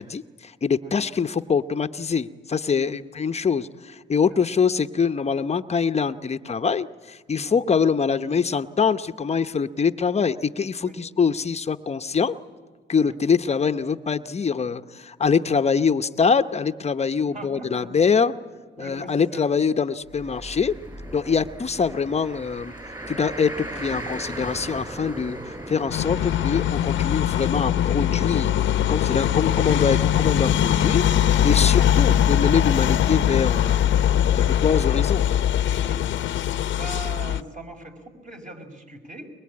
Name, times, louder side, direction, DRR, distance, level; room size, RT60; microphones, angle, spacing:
voice 1, 0.0-12.4 12.9-18.3 18.8-20.7 21.1-22.7 23.1-25.4 25.7-28.5 28.9-31.0 31.4-33.9 34.3-35.2, left 6 dB, 35° left, 9 dB, 0.8 m, -24 dB
voice 2, 17.2-18.1 18.8-19.6 21.2-21.4 35.8-36.0 36.7-39.3, right 2 dB, 40° right, 2 dB, 5.3 m, -40 dB
Car, 20.1-28.7, right 1 dB, 20° right, 4.7 m, -38 dB
sound 1, 25.9-37.4, left 10 dB, 70° left, 0.8 m, -21 dB
23.5 x 22.0 x 8.7 m, 1.5 s
cardioid pair, 90°, 20 cm